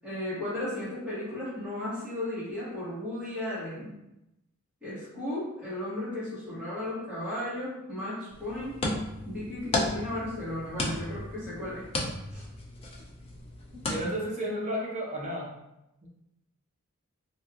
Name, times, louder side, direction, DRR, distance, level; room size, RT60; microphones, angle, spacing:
voice 1, 0.0-3.9 4.8-8.7 9.2-11.9 12.3-12.4, left 1 dB, 5° right, -11 dB, 1.3 m, -35 dB
sound 1, 8.3-14.0, left 2 dB, 25° left, 0.3 m, -34 dB
voice 2, 13.9-15.5, equal, 30° right, -4 dB, 0.7 m, -32 dB
3.2 x 2.7 x 2.3 m, 0.90 s
head